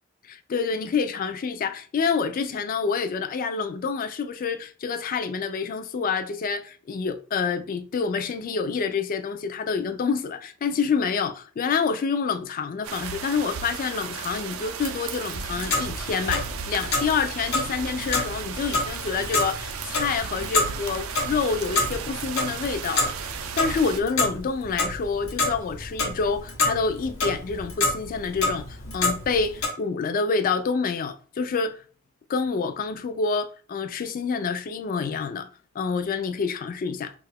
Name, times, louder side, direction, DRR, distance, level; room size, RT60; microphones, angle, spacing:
voice 1, 0.2-31.8 32.3-35.5 35.7-37.1, left 5 dB, 40° left, 0.3 m, -27 dB
sound 1, 12.8-24.0, right 7 dB, 80° right, 0.4 m, -35 dB
Clock, 15.3-29.7, left 2 dB, 90° left, 0.9 m, -29 dB
2.8 x 2.4 x 3.4 m
head